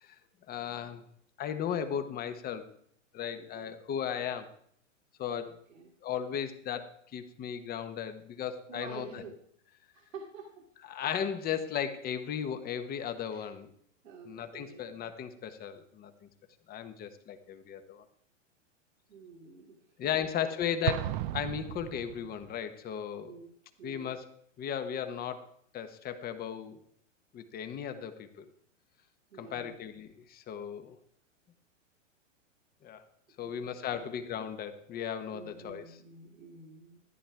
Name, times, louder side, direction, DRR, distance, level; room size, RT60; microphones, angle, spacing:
voice 1, 0.5-1.0 1.4-2.7 3.1-4.5 5.2-5.5 6.0-9.2 10.9-13.7 14.3-16.3 16.7-18.0 20.0-23.4 23.8-24.3 24.6-25.5 25.7-26.8 27.3-28.5 29.4-31.0 32.8-33.0 33.4-35.9, left 8 dB, 25° left, 10 dB, 1.1 m, -36 dB
voice 2, 3.4-3.7 5.3-5.9 8.7-9.4 9.9-10.7 13.3-13.5 14.0-14.8 19.1-20.2 23.3-23.5 23.8-24.1 29.3-29.8 33.4-34.1 35.3-37.0, right 4 dB, 80° right, -1 dB, 2.1 m, -49 dB
Explosion, 20.9-22.5, right 14 dB, 40° right, 0.5 m, -34 dB
13.5 x 9.9 x 3.5 m, 0.67 s
hypercardioid pair, 115°, 38 cm